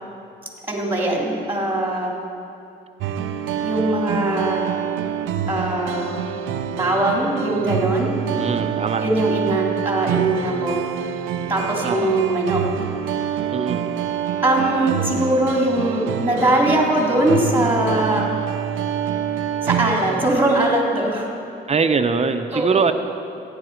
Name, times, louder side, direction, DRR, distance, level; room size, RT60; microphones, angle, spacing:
voice 1, 0.7-2.1 3.6-4.7 5.5-6.1 6.7-8.2 9.0-10.8 11.5-12.6 14.4-18.3 19.6-21.3 22.5-22.8, right 1 dB, 10° right, -1 dB, 2.5 m, -21 dB
sound 1, 3.0-20.3, right 8 dB, 85° right, 0.6 m, -26 dB
voice 2, 8.3-9.1 11.8-12.2 13.5-13.9 21.7-22.9, right 5 dB, 30° right, 8 dB, 0.7 m, -22 dB
14.5 x 10.0 x 4.5 m, 2.6 s
cardioid pair, 90°, 20 cm